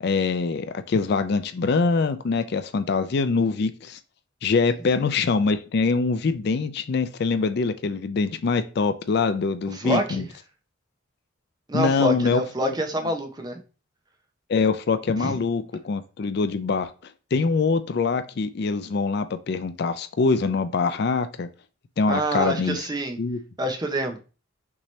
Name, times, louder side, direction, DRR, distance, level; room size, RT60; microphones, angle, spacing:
voice 1, 0.0-4.0 4.4-10.2 11.7-12.7 14.5-16.9 17.3-21.5 22.0-22.8 23.2-23.4, left 4 dB, 50° left, 11 dB, 0.4 m, -24 dB
voice 2, 4.7-5.0 9.7-10.3 11.7-13.6 15.2-15.4 22.1-23.2 23.6-24.2, right 1 dB, 20° right, 5 dB, 0.6 m, -27 dB
6.0 x 2.8 x 3.1 m, 0.34 s
head